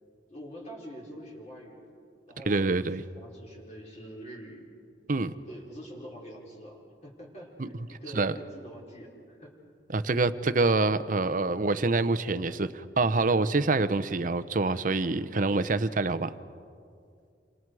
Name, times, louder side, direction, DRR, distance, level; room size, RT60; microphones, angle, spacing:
voice 1, 0.3-2.0 2.3-4.6 5.5-9.5 11.1-11.4, equal, 40° left, -3 dB, 4.9 m, -45 dB
voice 2, 2.5-3.0 5.1-5.3 7.6-7.7 8.1-8.3 9.9-16.3, right 3 dB, 50° right, 13 dB, 0.8 m, -26 dB
28.5 x 26.5 x 4.8 m, 2.3 s
head